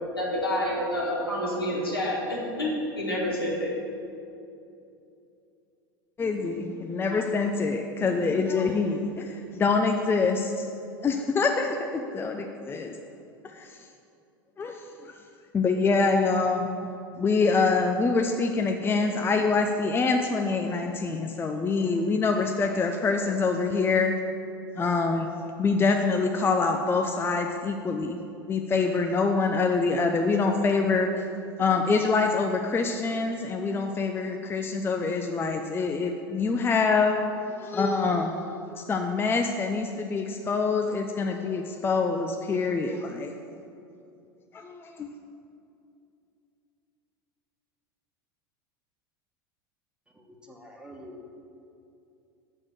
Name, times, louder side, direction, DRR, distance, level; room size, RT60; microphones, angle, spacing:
voice 1, 0.2-3.8, left 1 dB, 90° left, -4 dB, 2.0 m, -28 dB
voice 2, 6.2-10.6 11.0-12.9 13.5-13.7 14.6-14.8 15.5-24.2 24.8-25.3 25.6-28.2 28.4-31.1 31.6-37.2 37.5-43.3 44.6-45.1, left 4 dB, 20° left, 3 dB, 0.6 m, -25 dB
voice 3, 50.1-51.2, equal, 5° right, 0 dB, 1.4 m, -46 dB
6.3 x 6.2 x 7.4 m, 2.6 s
figure-of-eight pair, 85°, 12 cm